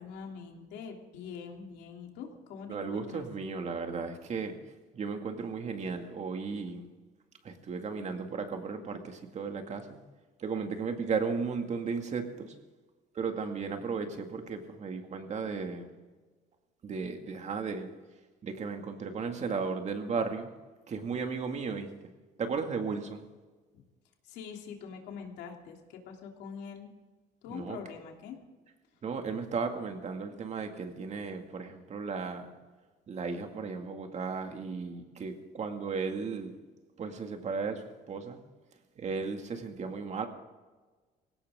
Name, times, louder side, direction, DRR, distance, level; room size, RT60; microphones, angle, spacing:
voice 1, 0.0-3.2 16.9-17.0 23.7-23.8 24.2-26.9 27.4-28.4, left 6 dB, 85° left, 2 dB, 3.0 m, -44 dB
voice 2, 2.7-4.6 4.9-6.8 7.4-10.0 10.4-12.5 13.2-15.9 16.8-17.9 18.4-20.5 20.9-21.9 22.4-23.2 27.5-27.8 29.0-32.5 33.1-36.6 37.0-38.4 39.0-40.3, right 5 dB, 40° right, 5 dB, 2.2 m, -35 dB
19.5 x 17.0 x 3.7 m, 1.3 s
cardioid pair, 110°, 17 cm